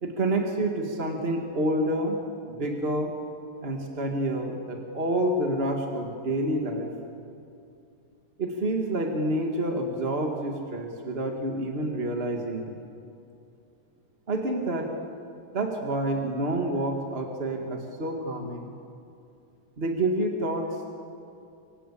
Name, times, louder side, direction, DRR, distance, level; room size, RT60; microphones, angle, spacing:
voice 1, 0.0-2.2 2.5-3.1 3.6-6.9 8.4-12.7 14.3-14.9 15.5-18.7 19.8-20.8, right 1 dB, 30° right, 2 dB, 1.2 m, -28 dB
26.0 x 24.0 x 8.5 m, 2.6 s
omnidirectional pair, 4.1 m